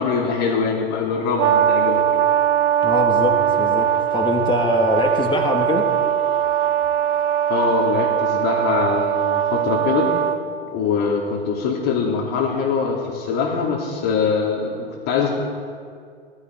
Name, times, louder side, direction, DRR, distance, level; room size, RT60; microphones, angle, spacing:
voice 1, 0.0-2.0 7.5-10.1 10.7-15.3, left 5 dB, 50° left, -3 dB, 3.2 m, -23 dB
Brass instrument, 1.4-10.4, right 10 dB, 55° right, 1.0 m, -20 dB
voice 2, 2.8-5.9, left 2 dB, 15° left, 3 dB, 2.4 m, -23 dB
18.0 x 16.0 x 4.8 m, 2.2 s
hypercardioid pair, 100°, 31 cm